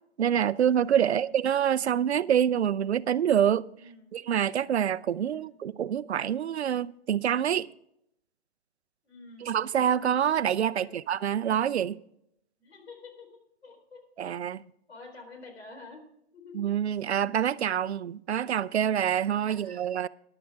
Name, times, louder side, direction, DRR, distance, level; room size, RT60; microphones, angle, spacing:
voice 1, 0.2-3.7 4.1-7.7 9.4-12.0 14.2-14.6 16.5-20.1, right 9 dB, 80° right, 0.6 m, -26 dB
voice 2, 1.0-1.3 3.7-4.1 5.2-5.5 9.0-9.7 10.7-11.1 12.6-13.3 13.6-14.3 14.9-16.0 16.3-16.6 19.4-19.8, left 3 dB, 80° left, 4.2 m, -49 dB
14.0 x 11.0 x 3.6 m
hypercardioid pair, 165°, 32 cm